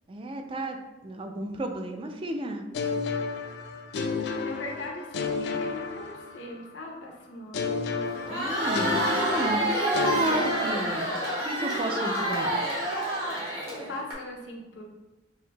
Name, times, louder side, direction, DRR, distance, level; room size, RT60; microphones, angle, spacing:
voice 1, 0.1-2.7 8.3-11.1 11.4-12.6, right 1 dB, 30° right, 4 dB, 0.3 m, -32 dB
sound 1, 2.7-6.7 7.5-11.4, left 4 dB, 65° left, 0.3 m, -32 dB
voice 2, 4.1-7.8 13.3-13.5 13.7-14.8, left 2 dB, 90° left, 0 dB, 0.7 m, -40 dB
Crowd, 8.1-14.1, right 1 dB, 55° right, 1.1 m, -28 dB
5.5 x 2.6 x 2.2 m, 1.1 s
head